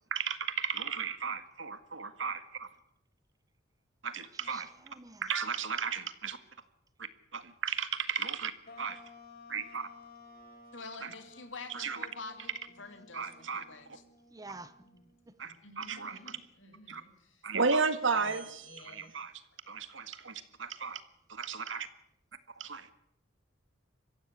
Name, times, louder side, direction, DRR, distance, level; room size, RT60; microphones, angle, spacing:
voice 1, 0.1-2.7 4.0-4.7 5.2-6.4 7.0-9.0 9.5-9.9 11.0-11.1 11.7-12.1 13.1-14.0 15.4-16.2 16.9-17.0 17.4-19.3 19.7-21.0 21.3-21.9 22.6-22.9, right 5 dB, 70° right, 1.8 m, -34 dB
voice 2, 4.3-5.3 14.3-14.8 15.3-15.4, right 3 dB, 20° right, 1.0 m, -49 dB
sound 1, 8.7-15.3, left 2 dB, 50° left, 3.7 m, -55 dB
voice 3, 10.7-14.0, left 4 dB, 70° left, 2.9 m, -46 dB
voice 4, 15.6-17.5 18.1-19.2, left 1 dB, 85° left, 7.4 m, -54 dB
23.5 x 15.5 x 8.5 m
head